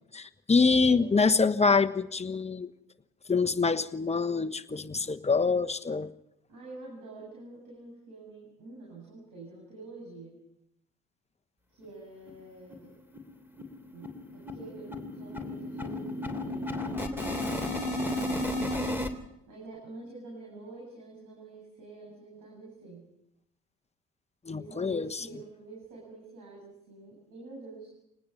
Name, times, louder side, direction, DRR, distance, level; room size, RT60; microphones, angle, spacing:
voice 1, 0.1-2.7 3.3-6.1 24.4-25.1, left 4 dB, 15° left, 8 dB, 1.2 m, -25 dB
voice 2, 6.5-10.4 11.7-13.0 13.9-17.5 18.0-19.1 19.5-23.1 24.5-28.1, right 2 dB, 60° right, -2 dB, 7.5 m, -47 dB
sound 1, 11.8-11.9 12.3-12.4 12.7-12.9 13.1-19.1, left 1 dB, 5° right, 3.1 m, -33 dB
24.5 x 19.5 x 5.7 m, 0.82 s
hypercardioid pair, 55°, 36 cm